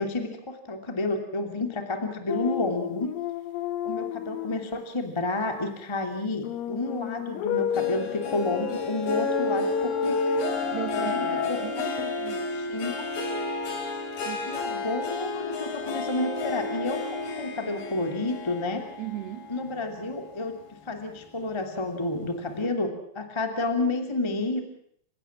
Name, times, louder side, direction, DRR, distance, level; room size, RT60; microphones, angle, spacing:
voice 1, 0.0-3.1 3.8-10.2 10.9-11.6 12.0-12.1 12.5-13.0 14.4-18.8 19.5-20.5 20.8-24.6, left 2 dB, 25° left, 4 dB, 0.5 m, -30 dB
sound 1, 2.3-4.6 6.4-11.6, left 6 dB, 90° left, 4.1 m, -30 dB
Harp, 7.7-20.5 20.9-21.3 21.8-21.9, left 3 dB, 45° left, 5.0 m, -33 dB
voice 2, 10.3-12.4 14.2-14.5 19.0-19.5, right 14 dB, 70° right, 8 dB, 2.8 m, -38 dB
29.5 x 16.5 x 7.4 m, 0.67 s
omnidirectional pair, 6.0 m